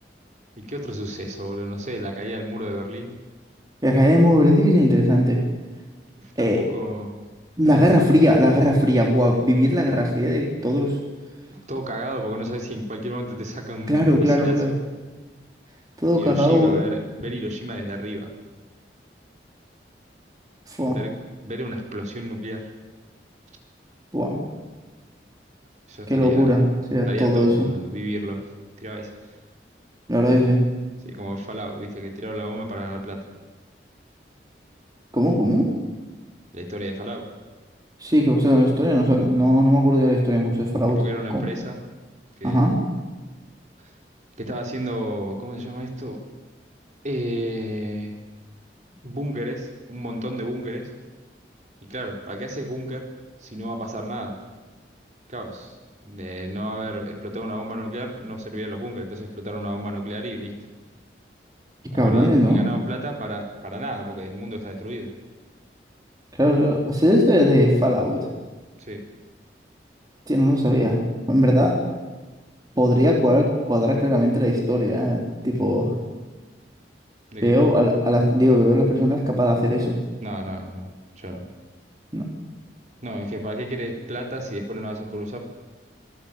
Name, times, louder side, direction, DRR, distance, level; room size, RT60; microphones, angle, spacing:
voice 1, 0.6-3.2 6.2-7.2 7.6-7.9 11.5-14.8 16.1-18.3 20.9-21.1 21.4-22.7 25.9-26.6 27.0-28.4 28.8-29.3 31.0-33.2 36.5-37.2 40.9-41.8 42.4-42.7 44.4-46.2 47.0-48.1 49.0-50.9 51.9-53.0 53.4-54.4 55.3-55.7 56.0-60.5 61.9-65.1 68.8-69.0 77.3-77.5 80.2-80.9 81.2-81.4 83.0-85.4, equal, 40° right, 2 dB, 4.0 m, -32 dB
voice 2, 3.8-5.4 6.4-6.6 7.6-11.0 13.9-14.7 16.0-16.7 20.7-21.0 24.1-24.4 26.1-26.6 26.9-27.7 30.1-30.6 35.1-35.7 38.0-41.0 41.3-41.4 42.4-42.8 61.9-62.6 66.4-68.2 70.3-71.8 72.8-75.9 77.4-80.0 82.1-82.2, equal, 20° right, 0 dB, 3.5 m, -19 dB
26.5 x 18.5 x 8.9 m, 1.2 s
head